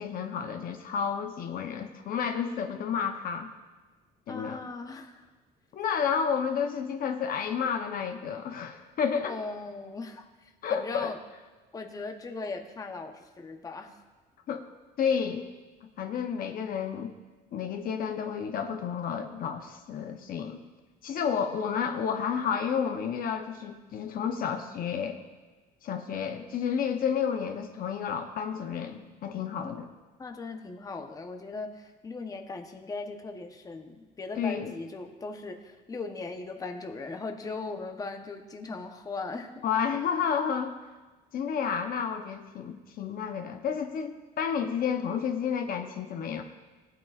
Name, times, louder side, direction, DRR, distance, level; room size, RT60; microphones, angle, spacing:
voice 1, 0.0-3.5 4.3-4.6 5.7-9.3 10.6-11.1 14.5-14.7 15.0-15.5 15.8-17.1 17.5-20.6 21.0-25.2 25.8-29.9 34.4-34.7 39.6-40.9 41.3-46.4, left 7 dB, 60° left, 5 dB, 0.8 m, -31 dB
voice 2, 4.3-5.1 9.2-11.2 11.7-13.9 29.6-29.7 30.2-39.7, left 3 dB, 20° left, 4 dB, 0.8 m, -38 dB
17.5 x 9.1 x 2.4 m, 1.2 s
cardioid pair, 110°, 17 cm